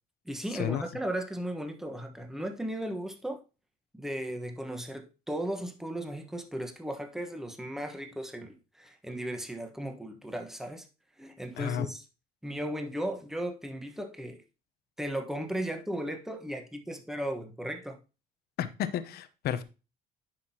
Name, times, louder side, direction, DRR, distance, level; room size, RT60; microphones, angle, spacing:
voice 1, 0.2-3.4 3.9-10.9 11.2-12.0 12.4-14.4 15.0-18.0, right 1 dB, ahead, 1.3 m, -36 dB
voice 2, 18.6-19.6, left 10 dB, 70° left, 0.9 m, -31 dB
9.8 x 6.0 x 2.9 m
cardioid pair, 110°, 17 cm